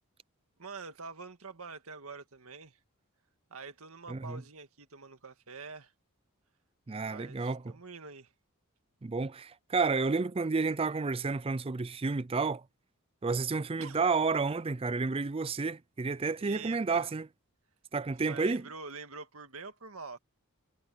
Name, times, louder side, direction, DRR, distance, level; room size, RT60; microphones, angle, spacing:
voice 1, 0.6-2.8 3.5-5.9 7.0-8.3 13.8-14.0 16.4-17.1 18.2-20.2, right 4 dB, 75° right, 1.9 m, -46 dB
voice 2, 4.1-4.4 6.9-7.8 9.0-12.6 13.2-17.3 17.9-18.7, right 4 dB, 25° right, 0.4 m, -31 dB
head